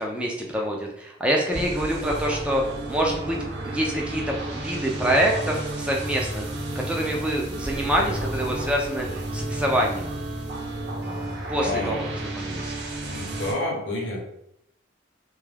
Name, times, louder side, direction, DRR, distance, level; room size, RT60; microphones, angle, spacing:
voice 1, 0.0-6.5 6.7-10.1 11.5-12.0 12.4-12.7, equal, 5° right, -1 dB, 0.3 m, -26 dB
sound 1, 1.5-13.5, right 2 dB, 60° right, 0.5 m, -32 dB
voice 2, 11.6-12.0 13.0-14.2, left 1 dB, 65° left, -1 dB, 0.7 m, -29 dB
2.2 x 2.2 x 3.2 m, 0.78 s
head